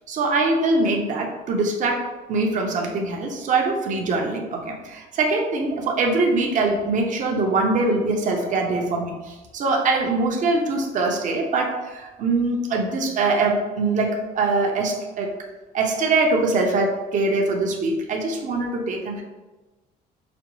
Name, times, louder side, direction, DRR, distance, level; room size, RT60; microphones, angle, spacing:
voice 1, 0.1-2.0 2.3-15.3 15.7-19.2, right 3 dB, 50° right, 1 dB, 0.7 m, -23 dB
5.0 x 2.1 x 3.0 m, 1.2 s
cardioid pair, 110°, 17 cm